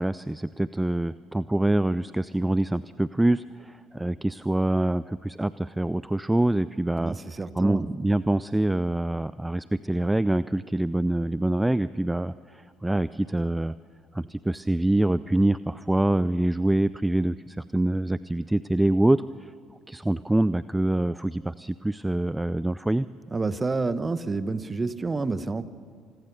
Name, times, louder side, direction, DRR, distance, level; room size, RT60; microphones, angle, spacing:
voice 1, 0.0-7.2 7.6-13.7 14.1-19.5 19.9-23.1, right 1 dB, 10° right, 16 dB, 0.5 m, -25 dB
voice 2, 7.0-7.9 23.3-25.7, right 3 dB, 25° right, 13 dB, 1.2 m, -29 dB
26.5 x 20.5 x 6.8 m, 2.1 s
hypercardioid pair, 55°, 0 cm